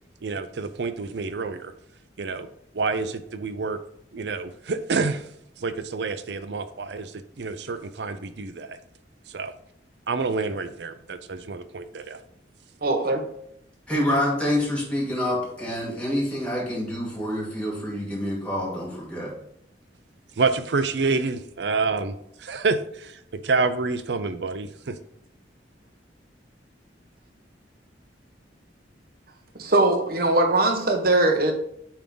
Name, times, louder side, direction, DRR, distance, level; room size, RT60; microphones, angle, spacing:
voice 1, 0.2-1.7 2.2-2.5 2.7-3.8 4.1-5.3 5.6-8.8 9.3-9.5 10.1-12.2 20.4-25.0, right 4 dB, 75° right, 11 dB, 0.6 m, -28 dB
voice 2, 12.8-13.2 29.6-31.5, right 2 dB, 55° right, 3 dB, 1.1 m, -21 dB
voice 3, 13.9-19.3, left 1 dB, 5° left, -5 dB, 1.6 m, -27 dB
8.6 x 3.6 x 3.9 m, 0.74 s
head